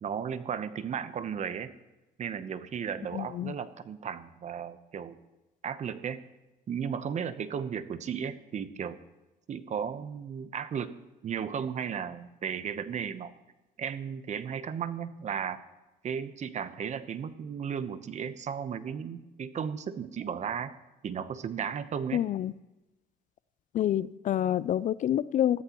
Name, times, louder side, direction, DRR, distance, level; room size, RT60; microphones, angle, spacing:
voice 1, 0.0-1.7 2.2-5.2 5.6-6.2 6.7-9.0 9.5-10.9 11.2-13.3 13.8-15.6 16.0-20.7 21.0-22.2, right 7 dB, 45° right, 12 dB, 1.0 m, -35 dB
voice 2, 3.1-3.5 22.1-22.5 23.7-25.6, left 11 dB, 50° left, 19 dB, 0.4 m, -27 dB
21.0 x 14.0 x 3.1 m, 1.0 s
cardioid pair, 110°, 17 cm